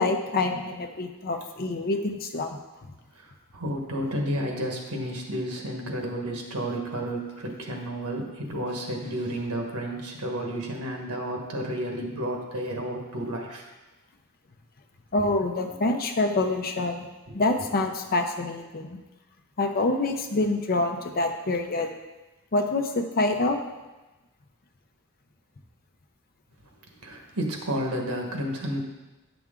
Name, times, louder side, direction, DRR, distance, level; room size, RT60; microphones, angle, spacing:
voice 1, 0.0-2.5 15.1-17.0 17.3-19.0 19.6-21.9 22.5-23.6, left 2 dB, 45° left, 5 dB, 0.7 m, -26 dB
voice 2, 3.2-13.6 17.3-17.4 27.0-28.8, equal, 75° right, 1 dB, 1.4 m, -31 dB
9.4 x 6.0 x 3.7 m, 1.1 s
head